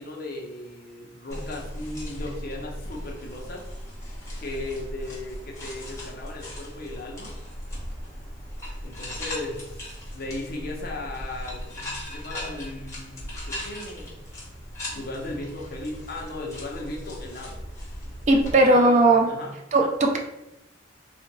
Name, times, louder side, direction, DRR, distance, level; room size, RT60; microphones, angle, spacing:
voice 1, 0.0-3.6 4.4-7.3 8.8-14.1 14.9-17.6 18.3-19.5, left 2 dB, 50° left, -1 dB, 0.7 m, -36 dB
sound 1, 1.3-18.5, equal, 15° left, 0.8 m, -38 dB
voice 2, 18.3-19.3 19.7-20.2, right 2 dB, 40° right, 2 dB, 0.4 m, -18 dB
3.5 x 2.4 x 3.0 m, 0.88 s
head